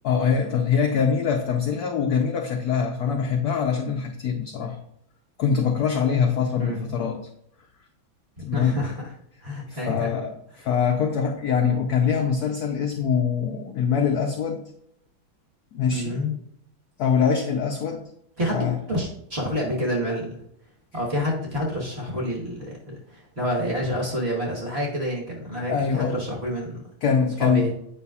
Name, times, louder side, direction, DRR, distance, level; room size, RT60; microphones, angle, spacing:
voice 1, 0.0-4.8 5.4-7.3 8.4-8.8 9.7-14.6 15.7-16.3 17.0-18.0 18.5-18.8 25.7-26.2 27.0-27.7, left 6 dB, 75° left, 2 dB, 0.8 m, -23 dB
voice 2, 8.4-8.9 9.4-10.1 15.9-16.4 18.4-20.4 20.9-26.8 27.4-27.7, equal, 35° right, -3 dB, 1.4 m, -28 dB
8.9 x 5.4 x 2.4 m, 0.73 s
omnidirectional pair, 2.3 m